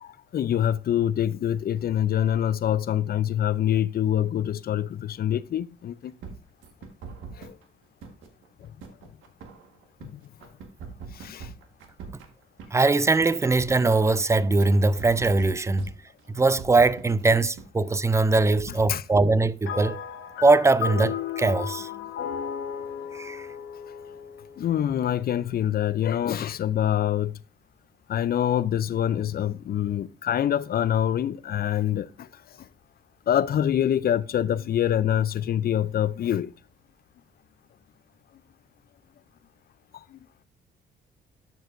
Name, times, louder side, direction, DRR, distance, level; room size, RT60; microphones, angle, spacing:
voice 1, 0.0-6.1 7.4-7.6 10.0-10.2 11.1-11.5 18.9-19.0 24.6-27.3 28.1-32.3 33.3-36.5 40.1-40.2, left 10 dB, 50° left, 0.5 m, -25 dB
sound 1, 6.2-7.6 8.0-10.1 10.4-12.7 13.0-14.7 15.0-17.3 17.6-17.7 18.0-19.0, right 5 dB, 85° right, 1.5 m, -41 dB
voice 2, 12.7-15.9 16.3-20.0 20.4-21.9 23.1-23.4, right 3 dB, 15° right, 0.4 m, -21 dB
sound 2, 19.7-25.2, left 8 dB, 80° left, 1.1 m, -34 dB
12.5 x 4.7 x 2.6 m
cardioid pair, 90°, 20 cm